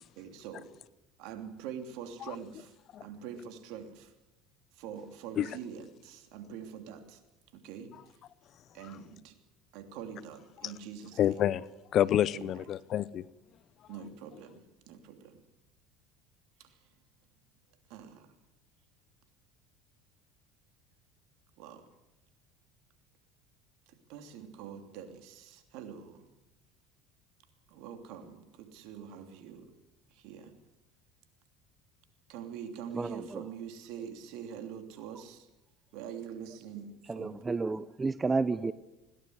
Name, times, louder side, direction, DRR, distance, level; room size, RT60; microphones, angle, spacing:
voice 1, 0.2-0.7 1.2-4.1 4.7-7.2 7.5-8.2 8.7-9.3 9.7-11.4 12.3-12.7 13.9-15.4 16.6-16.8 17.9-18.3 21.6-21.8 23.9-26.3 27.7-29.7 30.1-30.5 32.3-35.5 35.9-37.4, right 8 dB, 65° right, 3.0 m, -45 dB
voice 2, 11.2-11.7 11.9-13.2, left 11 dB, 50° left, 0.7 m, -27 dB
voice 3, 32.9-33.4 37.1-38.7, right 4 dB, 20° right, 0.8 m, -31 dB
21.0 x 17.5 x 8.0 m
hypercardioid pair, 75°, 0 cm